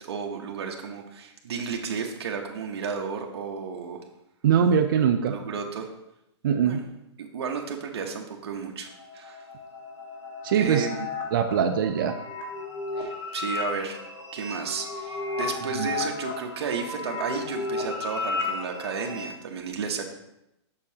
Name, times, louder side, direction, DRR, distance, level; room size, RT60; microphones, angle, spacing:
voice 1, 0.0-4.0 5.3-5.9 6.6-6.8 7.2-9.4 10.6-11.1 13.0-14.1 14.3-20.1, right 5 dB, 60° right, 1 dB, 0.9 m, -33 dB
voice 2, 4.4-5.3 6.4-6.8 10.4-10.9 11.3-12.1 15.8-15.9, right 7 dB, 45° right, 5 dB, 0.5 m, -22 dB
sound 1, 8.9-19.2, left 3 dB, 85° left, 1.7 m, -34 dB
6.8 x 6.3 x 2.8 m, 0.85 s
hypercardioid pair, 160°, 15 cm